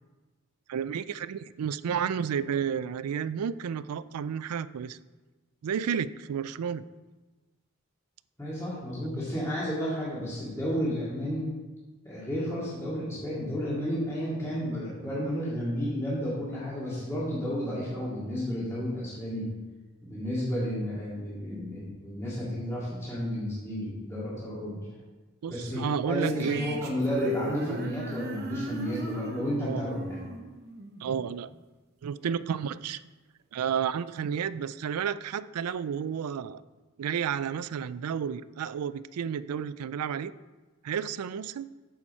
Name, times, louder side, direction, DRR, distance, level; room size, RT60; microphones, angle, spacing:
voice 1, 0.7-5.0 5.6-6.9 25.4-26.6 29.6-29.9 31.0-31.5 32.0-33.0 33.5-36.6 37.0-40.3 40.8-41.7, right 7 dB, 90° right, 16 dB, 0.4 m, -31 dB
voice 2, 8.4-11.4 12.0-19.5 20.0-24.8 25.5-30.2, equal, 10° left, -9 dB, 2.1 m, -32 dB
sound 1, 26.2-31.6, right 1 dB, 45° right, 0.9 m, -37 dB
8.8 x 7.1 x 4.3 m, 1.2 s
head